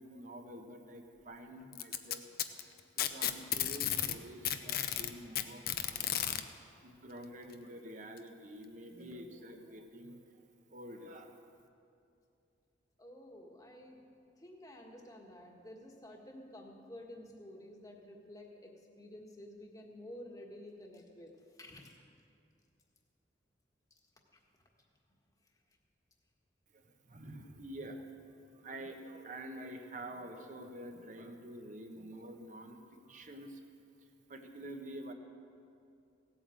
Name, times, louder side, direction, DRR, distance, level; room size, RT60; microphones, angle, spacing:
voice 1, 0.0-2.3 2.5-6.2 6.8-10.4 10.7-11.4 26.7-28.1 28.5-32.8 33.0-33.6 34.3-35.1, right 1 dB, 40° right, 5 dB, 1.2 m, -48 dB
Packing tape duct tape, 1.7-4.2 4.4-6.4 7.5-7.6 8.2-8.3 9.1-9.2, left 11 dB, 55° left, 0.7 m, -33 dB
voice 2, 13.0-14.0 14.4-18.7 19.0-21.9, left 1 dB, 20° left, 1 dB, 1.5 m, -51 dB
17.0 x 8.7 x 7.6 m, 2.6 s
head